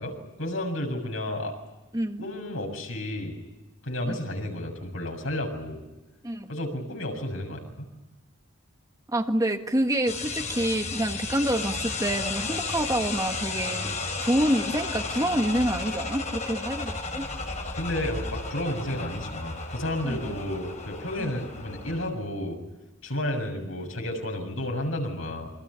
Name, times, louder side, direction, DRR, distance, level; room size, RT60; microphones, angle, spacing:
voice 1, 0.0-1.5 2.2-3.4 3.8-5.8 6.5-7.9 17.7-22.6 23.0-25.5, left 1 dB, 75° left, 3 dB, 7.1 m, -32 dB
voice 2, 1.9-2.2 4.0-4.2 6.2-6.5 9.1-13.9 14.2-17.2 20.0-20.3 21.2-21.3, right 1 dB, 15° right, 5 dB, 1.6 m, -27 dB
sound 1, 10.1-22.1, left 3 dB, 35° left, 4.8 m, -33 dB
28.0 x 25.5 x 7.0 m, 1.1 s
head